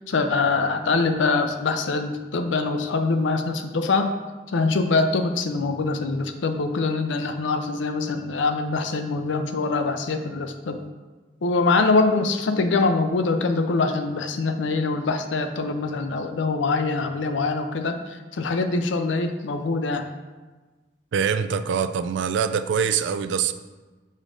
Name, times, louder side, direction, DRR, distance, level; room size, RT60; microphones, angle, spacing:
voice 1, 0.1-4.1 4.5-10.8 11.4-20.0, left 3 dB, 80° left, 7 dB, 0.5 m, -24 dB
voice 2, 21.1-23.5, right 7 dB, 75° right, 12 dB, 0.3 m, -24 dB
6.4 x 5.0 x 3.8 m, 1.3 s
head